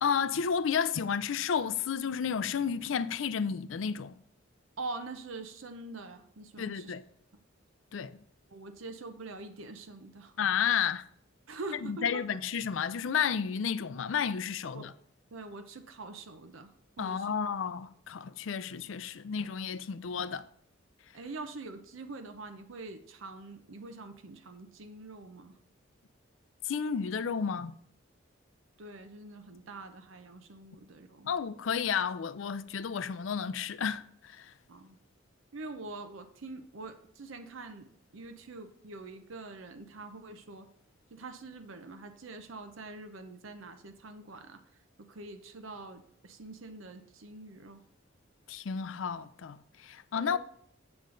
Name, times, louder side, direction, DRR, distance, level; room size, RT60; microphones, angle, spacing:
voice 1, 0.0-4.2 6.6-7.0 7.9-8.2 10.4-11.1 11.8-14.9 17.0-20.5 26.6-27.7 31.3-34.5 48.5-50.4, left 7 dB, 75° left, 0.4 m, -32 dB
voice 2, 4.8-6.9 8.5-10.4 11.5-12.2 14.7-14.9 15.3-17.3 21.1-25.6 28.8-31.3 34.7-35.0 35.5-40.7 41.1-44.6 45.0-47.8 50.2-50.4, right 3 dB, 80° right, 0.7 m, -44 dB
7.8 x 7.3 x 3.8 m
head